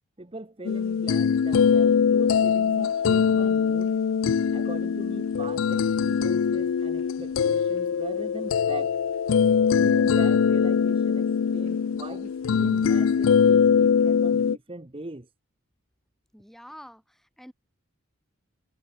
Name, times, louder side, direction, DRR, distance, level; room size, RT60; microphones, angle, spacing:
voice 1, 0.2-3.9 4.5-9.0 9.7-15.3, right 2 dB, 25° right, 1.2 m, -41 dB
sound 1, 0.6-14.6, left 6 dB, 65° left, 0.4 m, -22 dB
voice 2, 16.3-17.5, equal, ahead, 3.5 m, -47 dB
head